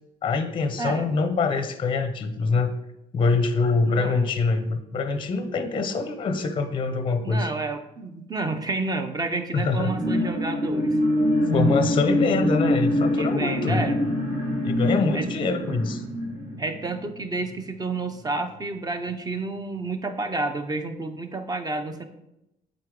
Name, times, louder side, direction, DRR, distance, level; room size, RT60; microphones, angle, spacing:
voice 1, 0.2-2.7 3.1-7.5 9.5-9.9 11.5-13.9 14.6-16.0, left 4 dB, 30° left, 9 dB, 0.6 m, -24 dB
voice 2, 0.8-1.1 3.8-4.3 7.2-11.0 13.1-14.0 15.1-15.3 16.6-22.0, right 3 dB, 20° right, 8 dB, 0.6 m, -30 dB
sound 1, 9.8-17.5 18.0-18.1, left 1 dB, 60° right, 2.4 m, -25 dB
7.8 x 3.9 x 3.7 m, 0.88 s
cardioid pair, 110°, 17 cm